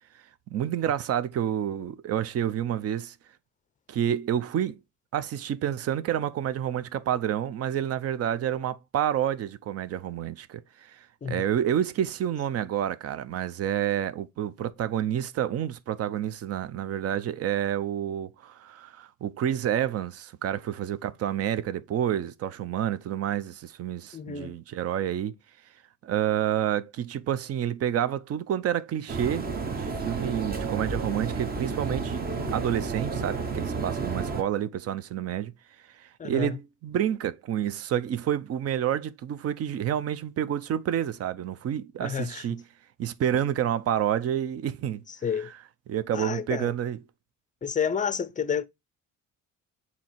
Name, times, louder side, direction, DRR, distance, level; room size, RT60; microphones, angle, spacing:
voice 1, 0.5-3.1 3.9-4.8 5.1-25.3 26.0-35.5 36.0-42.6 43.0-45.0 45.9-47.0, right 10 dB, 45° right, 0.6 m, -29 dB
voice 2, 24.1-24.5 36.2-36.6 42.0-42.4 45.2-45.5 46.1-46.7 47.6-48.6, left 7 dB, 25° left, 0.5 m, -30 dB
sound 1, 29.1-34.4, right 4 dB, 25° right, 0.9 m, -31 dB
7.2 x 2.9 x 4.4 m
cardioid pair, 120°, 33 cm